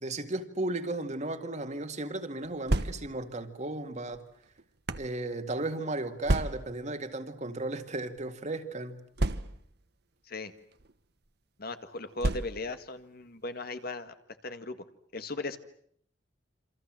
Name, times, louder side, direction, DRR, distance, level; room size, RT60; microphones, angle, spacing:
voice 1, 0.0-4.2 4.9-9.0, right 2 dB, 40° right, 2.1 m, -35 dB
sound 1, 2.4-3.3 4.1-5.1 6.2-6.9 7.7-8.2 9.2-9.8 10.7-10.9 12.2-12.8, right 2 dB, 60° right, 1.3 m, -31 dB
voice 2, 11.6-14.1 14.4-14.8 15.1-15.6, left 2 dB, 55° left, 1.8 m, -37 dB
27.5 x 26.5 x 7.6 m
head